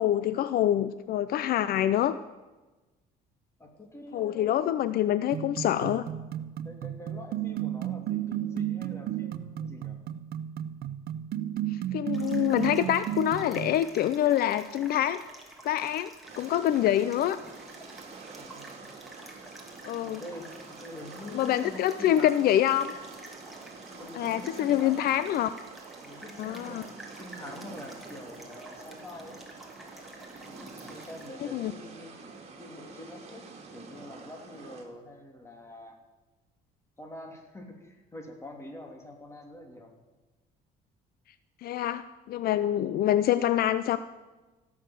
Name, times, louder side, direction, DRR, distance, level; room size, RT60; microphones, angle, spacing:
voice 1, 0.0-2.1 4.1-6.0 11.7-15.2 15.6-16.1 16.4-17.4 19.8-20.2 21.3-22.9 24.1-25.5 26.4-26.8 31.5-31.7 41.6-44.0, left 11 dB, 65° left, 14 dB, 0.5 m, -26 dB
voice 2, 3.6-4.6 6.6-10.0 18.3-18.8 20.0-22.4 23.9-25.0 26.0-26.8 27.2-29.4 30.5-32.1 32.6-33.5 33.7-36.0 37.0-40.0, left 1 dB, 15° left, 2 dB, 2.9 m, -45 dB
sound 1, 5.3-13.8, right 12 dB, 65° right, 0.6 m, -33 dB
sound 2, 12.1-31.3, right 1 dB, ahead, 2.7 m, -50 dB
sound 3, 16.2-34.8, right 4 dB, 40° right, 2.7 m, -47 dB
16.0 x 7.1 x 7.7 m, 1.2 s
cardioid pair, 110°, 17 cm